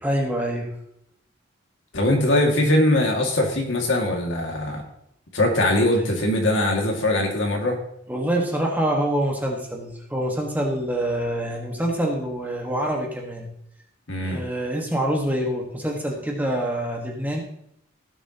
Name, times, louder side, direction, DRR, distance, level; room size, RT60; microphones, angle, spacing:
voice 1, 0.0-0.7 8.1-13.5 14.2-17.4, right 1 dB, 10° right, 0 dB, 1.5 m, -26 dB
voice 2, 1.9-4.8 5.3-7.8 14.1-14.4, left 1 dB, 65° left, 1 dB, 2.1 m, -21 dB
16.5 x 7.1 x 2.9 m, 0.74 s
head